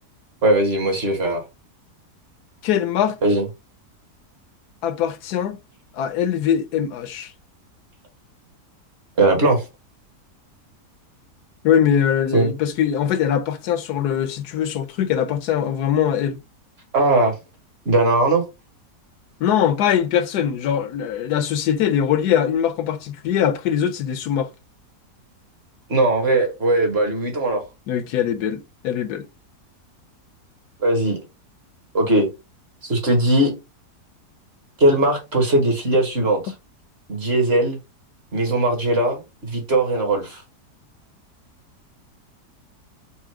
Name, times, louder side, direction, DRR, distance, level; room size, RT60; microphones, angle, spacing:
voice 1, 0.4-1.4 3.2-3.4 9.2-9.6 12.3-12.5 16.9-17.3 17.8-18.4 25.9-27.6 30.8-31.2 31.9-32.3 32.8-33.5 34.8-36.5 37.1-37.8 38.3-40.4, right 1 dB, 40° right, 1.3 m, -19 dB
voice 2, 2.6-3.2 4.8-5.6 5.9-7.3 11.6-16.4 19.4-24.5 27.9-29.3, left 9 dB, 75° left, 1.1 m, -22 dB
4.3 x 2.0 x 4.6 m
omnidirectional pair, 1.7 m